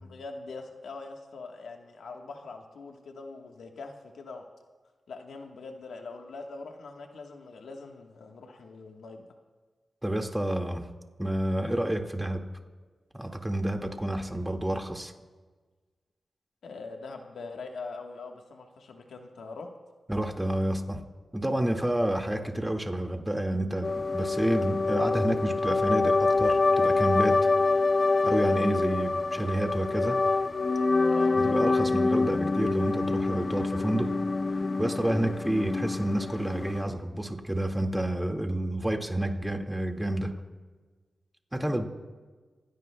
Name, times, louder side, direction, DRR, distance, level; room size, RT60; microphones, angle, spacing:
voice 1, 0.0-4.5 5.1-9.3 16.6-19.7 31.0-31.4, left 3 dB, 90° left, 3 dB, 1.3 m, -42 dB
voice 2, 10.0-10.8 11.2-12.4 13.1-15.1 20.1-21.0 21.3-27.4 28.2-30.2 31.4-34.1 34.8-40.3 41.5-41.9, right 1 dB, 10° right, 3 dB, 1.9 m, -29 dB
sound 1, 23.8-36.8, left 3 dB, 45° left, 0.4 m, -26 dB
27.5 x 16.5 x 2.2 m, 1.4 s
cardioid pair, 55°, 0 cm